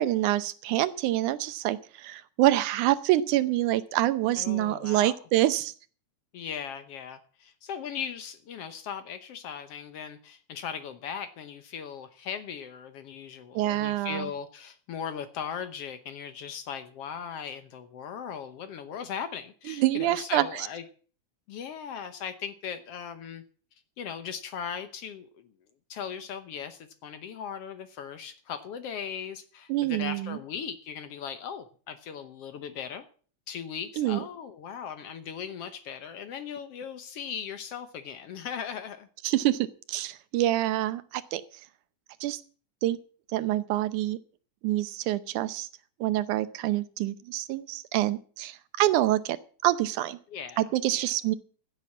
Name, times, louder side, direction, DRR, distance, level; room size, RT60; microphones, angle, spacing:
voice 1, 0.0-5.7 13.5-14.3 19.7-20.7 29.7-30.4 34.0-34.2 39.2-41.4 42.2-42.4 42.8-43.0 43.3-44.2 44.6-45.7 46.0-49.4 49.6-50.2 50.6-51.4, right 14 dB, 90° right, 14 dB, 2.3 m, -26 dB
voice 2, 4.4-5.2 6.3-20.8 21.5-23.4 23.7-25.5 25.9-33.0 33.5-39.1 50.3-51.1, left 7 dB, 65° left, 10 dB, 1.7 m, -38 dB
15.0 x 7.7 x 7.2 m, 0.42 s
omnidirectional pair, 3.4 m